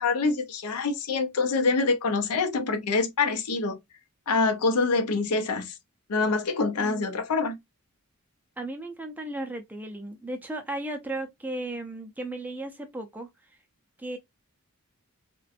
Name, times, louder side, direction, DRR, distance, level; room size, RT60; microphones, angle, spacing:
voice 1, 0.0-3.8 4.3-5.8 6.1-7.6, left 4 dB, 90° left, 0.6 m, -25 dB
voice 2, 6.8-7.1 8.6-13.3 14.0-14.2, right 2 dB, 10° right, 0.4 m, -35 dB
2.5 x 2.2 x 2.4 m
head